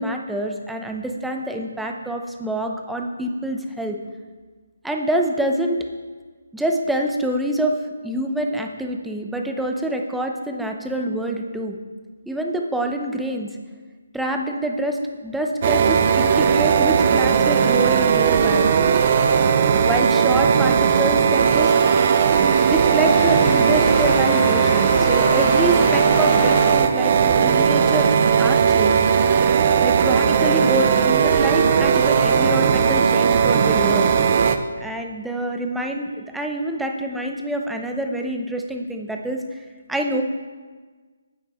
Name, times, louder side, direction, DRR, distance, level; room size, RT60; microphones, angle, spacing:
voice 1, 0.0-4.0 4.8-5.9 6.5-7.8 8.0-11.8 12.3-13.6 14.1-18.7 19.8-21.7 22.7-28.1 28.4-29.0 29.8-34.1 34.8-39.6 39.9-40.2, right 1 dB, 5° right, 2 dB, 0.8 m, -26 dB
sound 1, 15.6-34.6, right 7 dB, 40° right, 0.7 m, -17 dB
sound 2, 21.4-26.7, left 2 dB, 20° left, 1.9 m, -29 dB
9.5 x 8.3 x 4.3 m, 1.4 s
figure-of-eight pair, 155°, 0 cm